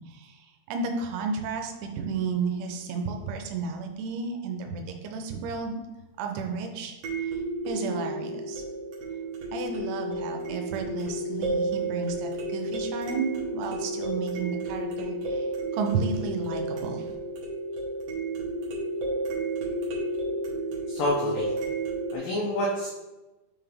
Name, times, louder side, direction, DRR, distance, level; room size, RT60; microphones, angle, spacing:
voice 1, 0.7-5.8 6.2-6.9 7.7-8.6 9.5-15.5 15.7-17.0, right 4 dB, 85° right, 4 dB, 3.2 m, -32 dB
sound 1, 2.3-2.4 7.0-22.2, right 2 dB, 65° right, 2.6 m, -32 dB
voice 2, 20.9-21.5 22.1-22.9, left 1 dB, 85° left, -4 dB, 2.0 m, -27 dB
10.0 x 3.9 x 3.5 m, 1.1 s
omnidirectional pair, 5.4 m